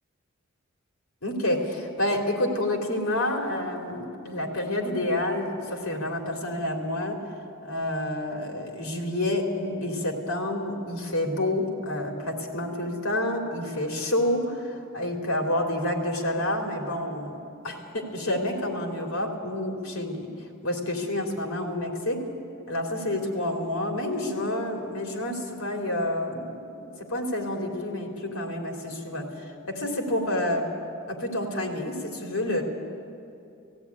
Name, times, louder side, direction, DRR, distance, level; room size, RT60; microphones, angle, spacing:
voice 1, 1.2-7.2 7.6-22.2 22.7-30.7 31.1-32.6, left 1 dB, 90° left, 2 dB, 3.2 m, -29 dB
17.0 x 17.0 x 9.7 m, 2.6 s
head